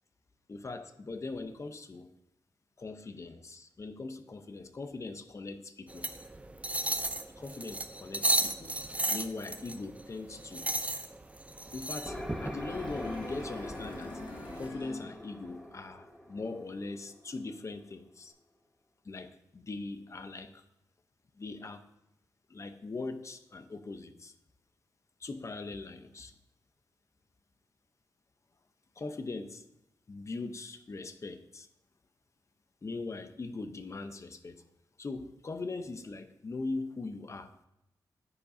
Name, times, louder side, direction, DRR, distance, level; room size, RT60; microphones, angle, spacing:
voice 1, 0.5-2.1 2.8-6.1 7.4-8.7 9.1-10.7 11.7-14.2 14.6-18.3 19.0-20.6 21.4-21.8 22.5-24.3 25.2-26.3 29.0-29.6 30.1-31.7 32.8-34.6 35.0-37.5, left 3 dB, 40° left, 9 dB, 0.8 m, -40 dB
sound 1, 5.9-14.7, right 2 dB, 15° right, 0.6 m, -35 dB
sound 2, 12.0-17.7, left 1 dB, 5° left, 1.5 m, -44 dB
sound 3, 12.7-15.8 16.1-16.2, left 2 dB, 85° left, 1.9 m, -46 dB
9.9 x 9.7 x 2.7 m, 0.84 s
cardioid pair, 80°, 8 cm